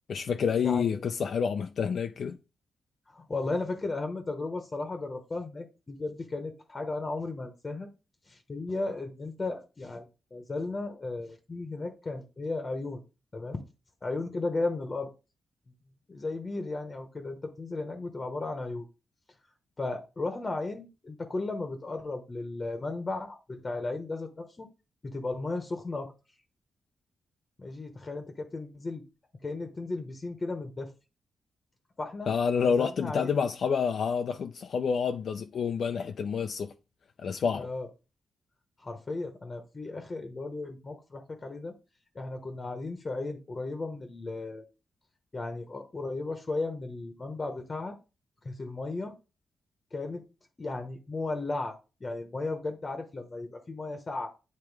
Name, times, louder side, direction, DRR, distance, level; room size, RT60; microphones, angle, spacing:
voice 1, 0.1-2.4 32.3-36.7 37.2-37.7, left 6 dB, 65° left, 0.5 m, -28 dB
voice 2, 0.6-1.0 3.1-7.9 8.3-10.1 10.3-13.0 13.3-13.6 14.0-15.1 16.1-18.9 19.8-24.7 25.0-26.1 27.6-29.0 29.4-30.9 32.0-32.3 32.6-33.3 37.5-37.9 38.8-41.7 42.1-44.6 45.3-48.0 48.4-49.2 49.9-50.2 50.6-54.3, left 3 dB, 30° left, 1.0 m, -35 dB
8.9 x 3.0 x 4.7 m
cardioid pair, 110°, 0 cm